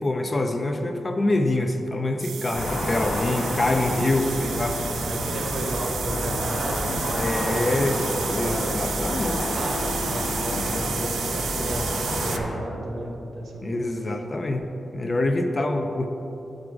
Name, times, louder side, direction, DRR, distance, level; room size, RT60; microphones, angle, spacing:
voice 1, 0.0-4.8 7.2-8.0 8.4-9.5 13.6-16.1, left 2 dB, 25° left, 5 dB, 0.3 m, -25 dB
sound 1, 2.2-12.4, right 7 dB, 85° right, 0.3 m, -32 dB
sound 2, 2.5-12.4, left 1 dB, 75° left, 1.1 m, -29 dB
voice 2, 5.0-8.8 9.6-14.2, right 1 dB, 65° right, 0 dB, 0.8 m, -33 dB
6.3 x 4.8 x 4.8 m, 3.0 s
wide cardioid pair, 175°, 0 cm